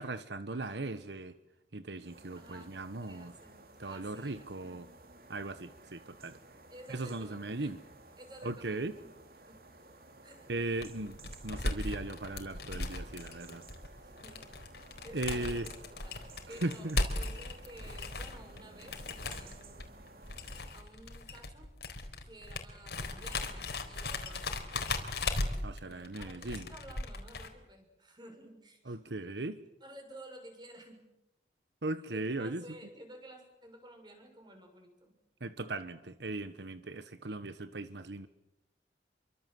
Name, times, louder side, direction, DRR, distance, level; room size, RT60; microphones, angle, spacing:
voice 1, 0.0-1.3 1.7-3.3 3.8-4.9 5.3-6.4 6.9-7.8 8.4-8.9 10.5-13.6 15.1-15.6 16.5-17.0 25.6-26.7 28.9-29.6 31.8-32.6 35.4-38.3, right 2 dB, 80° right, 12 dB, 1.2 m, -38 dB
voice 2, 0.5-0.9 2.3-2.8 3.0-4.8 6.7-7.8 8.2-9.1 9.4-9.7 10.2-10.5 14.0-14.6 15.0-19.9 20.7-21.7 22.2-24.7 25.8-29.0 29.4-29.5 29.8-31.1 32.1-35.2, right 1 dB, 25° right, 4 dB, 6.5 m, -53 dB
sound 1, 2.0-20.8, right 2 dB, 55° right, 2.8 m, -55 dB
sound 2, 10.6-27.5, left 2 dB, 70° left, 4.1 m, -37 dB
28.5 x 24.5 x 7.8 m, 0.88 s
head